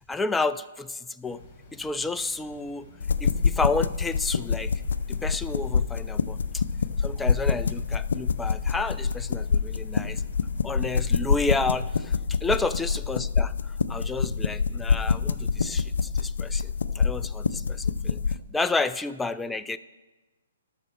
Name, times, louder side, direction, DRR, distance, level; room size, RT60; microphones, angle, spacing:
voice 1, 0.1-1.4 1.7-2.9 3.2-4.7 5.1-6.6 7.0-10.2 10.6-13.5 13.9-18.2 18.5-19.8, left 3 dB, 5° left, 11 dB, 0.3 m, -31 dB
sound 1, 1.2-10.6, left 2 dB, 25° left, 3.4 m, -50 dB
sound 2, 3.0-18.4, left 5 dB, 70° left, 0.5 m, -26 dB
12.5 x 6.1 x 6.3 m, 1.2 s
figure-of-eight pair, 130°, 0 cm